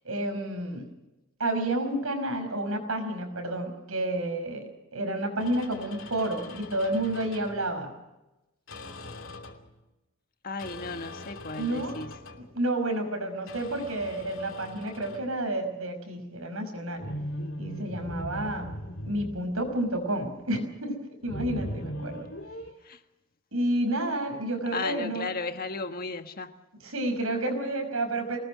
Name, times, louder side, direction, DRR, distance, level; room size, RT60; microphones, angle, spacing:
voice 1, 0.0-0.9 1.4-7.9 11.6-12.0 12.3-17.1 17.6-18.7 19.1-21.0 21.2-22.3 23.5-25.3 26.8-28.4, right 1 dB, 80° right, 5.7 m, -30 dB
sound 1, 5.4-7.7 8.7-9.7 10.6-12.5 13.5-15.3 17.0-20.2 21.2-22.7, equal, 65° left, 2.9 m, -40 dB
voice 2, 10.4-12.1 22.8-23.0 24.7-26.5, left 3 dB, 45° left, 1.6 m, -35 dB
25.0 x 20.0 x 6.3 m
head